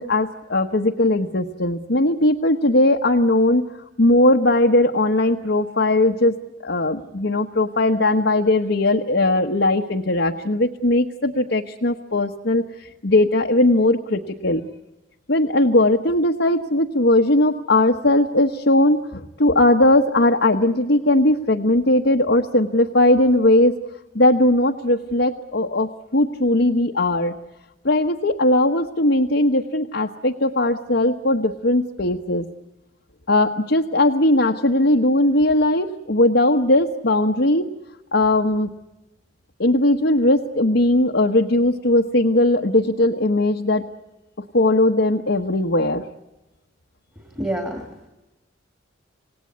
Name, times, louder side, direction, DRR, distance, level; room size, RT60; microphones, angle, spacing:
voice 1, 0.0-3.6 4.0-6.4 6.6-14.7 15.3-23.7 24.1-27.4 27.8-32.5 33.3-37.7 38.1-38.7 39.6-43.9 44.5-46.0, left 1 dB, 60° left, 1 dB, 1.2 m, -19 dB
voice 2, 47.2-48.1, right 1 dB, 10° right, 4 dB, 2.4 m, -29 dB
27.5 x 18.0 x 9.5 m, 1.0 s
head